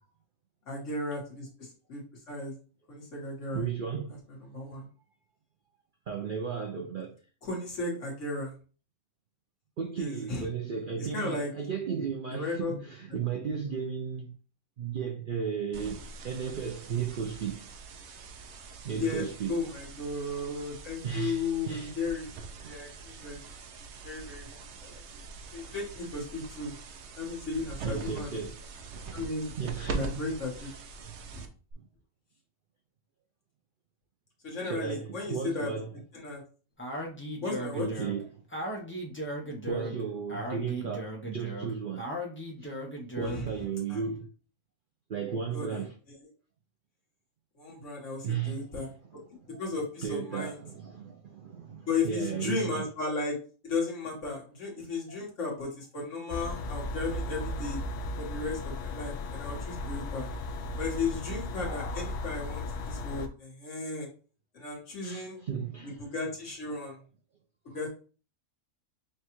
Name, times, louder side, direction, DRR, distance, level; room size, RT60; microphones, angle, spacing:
voice 1, 0.7-2.0 2.3-2.5 2.9-3.6 4.1-4.2 4.5-4.9 7.4-8.5 10.0-10.4 11.0-11.5 12.3-12.7 19.0-22.3 22.6-23.4 24.0-25.2 25.5-26.7 27.2-28.4 29.1-29.5 29.9-30.7 31.3-31.4 34.4-35.7 36.1-36.4 37.4-37.9 43.2-43.5 43.9-44.0 45.5-45.8 47.6-48.9 49.4-50.6 51.9-53.4 53.6-57.8 58.2-60.3 60.8-64.1 64.5-65.4 65.8-67.0 67.7-67.9, left 3 dB, 55° left, 1.7 m, -35 dB
voice 2, 3.5-4.2 6.1-7.2 9.8-14.3 14.8-17.6 18.8-19.6 21.0-21.9 22.6-22.7 27.8-28.6 29.6-30.2 30.6-30.8 31.8-31.9 34.6-35.9 37.8-38.3 39.5-42.1 42.6-42.7 43.2-44.3 45.1-46.0 48.2-49.6 50.0-52.9 55.1-55.2 65.0-66.1 67.7-67.8, right 6 dB, 90° right, 0.4 m, -35 dB
sound 1, 15.7-31.7, right 4 dB, 60° right, 0.8 m, -43 dB
Speech, 36.8-43.5, equal, 15° left, 0.4 m, -37 dB
sound 2, 56.3-63.3, left 2 dB, 90° left, 1.1 m, -36 dB
6.0 x 2.3 x 3.0 m
omnidirectional pair, 1.6 m